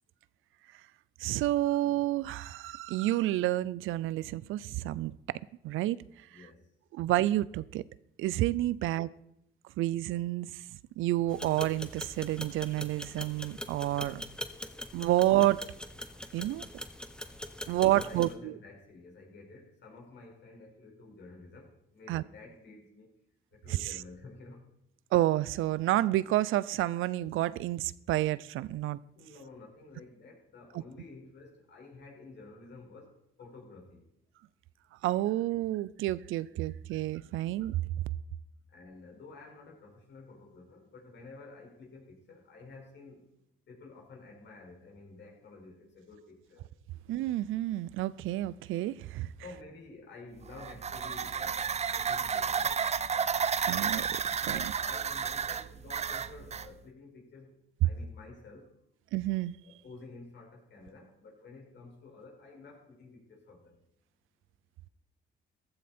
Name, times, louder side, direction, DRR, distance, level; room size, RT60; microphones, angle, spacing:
voice 1, 1.2-5.1 5.6-6.0 6.9-7.8 8.2-9.1 9.8-10.5 11.0-14.2 14.9-15.6 16.3-16.6 17.7-18.5 22.1-22.2 25.1-29.0 35.0-37.8 47.1-49.3 53.6-54.1 54.5-54.6 59.1-59.6, right 15 dB, 85° right, 0.5 m, -29 dB
voice 2, 6.2-6.6 17.8-23.1 23.5-24.6 29.1-34.0 38.7-43.2 43.7-46.7 49.4-52.8 54.4-57.5 57.8-58.7 59.6-63.8, left 3 dB, 60° left, 5.1 m, -51 dB
sound 1, 11.3-18.3, left 1 dB, 5° left, 1.1 m, -42 dB
sound 2, 50.4-56.7, right 6 dB, 35° right, 0.6 m, -32 dB
15.0 x 13.5 x 4.3 m
cardioid pair, 90°, 20 cm